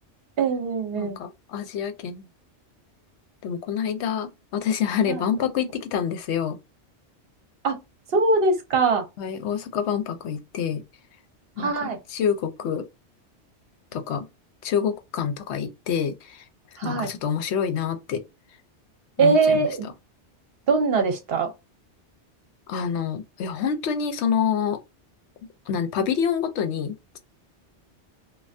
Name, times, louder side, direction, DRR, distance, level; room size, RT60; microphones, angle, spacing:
voice 1, 0.4-1.2 5.1-5.2 7.6-7.8 8.1-9.0 11.6-12.0 16.8-17.1 19.2-19.9 20.7-21.5, right 4 dB, 60° right, 0.9 m, -22 dB
voice 2, 0.9-2.3 3.4-6.6 9.2-10.8 11.6-12.8 13.9-14.2 14.6-16.4 16.8-18.2 19.2-19.7 22.7-24.8 25.7-27.2, left 7 dB, 75° left, 0.8 m, -27 dB
3.2 x 2.2 x 2.6 m
omnidirectional pair, 1.2 m